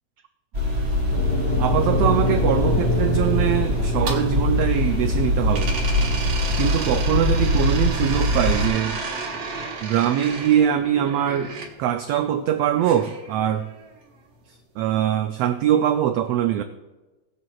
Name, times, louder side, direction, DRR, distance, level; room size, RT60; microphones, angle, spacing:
sound 1, 0.5-8.7, left 1 dB, 25° right, 2.6 m, -23 dB
sound 2, 1.1-9.3, left 2 dB, 70° left, 2.7 m, -28 dB
voice 1, 1.6-5.8 6.6-9.0 9.8-11.5 11.8-13.6 14.8-16.6, right 10 dB, 85° right, 8 dB, 1.4 m, -22 dB
sound 3, 3.7-5.2 5.5-11.7 12.8-13.9, right 4 dB, 60° right, 2.3 m, -33 dB
20.5 x 7.7 x 2.4 m, 1.2 s
omnidirectional pair, 3.4 m